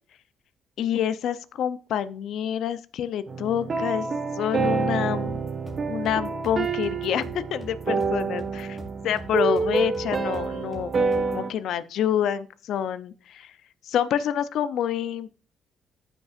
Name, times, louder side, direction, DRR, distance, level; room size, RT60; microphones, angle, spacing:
voice 1, 0.8-4.1 4.4-5.4 5.9-8.8 9.0-13.5 13.8-15.3, left 9 dB, 75° left, 15 dB, 0.6 m, -27 dB
sound 1, 3.3-11.5, right 4 dB, 45° right, 1.4 m, -27 dB
sound 2, 5.3-11.5, equal, 10° left, 3.7 m, -43 dB
14.0 x 5.3 x 2.5 m, 0.37 s
cardioid pair, 95°, 0 cm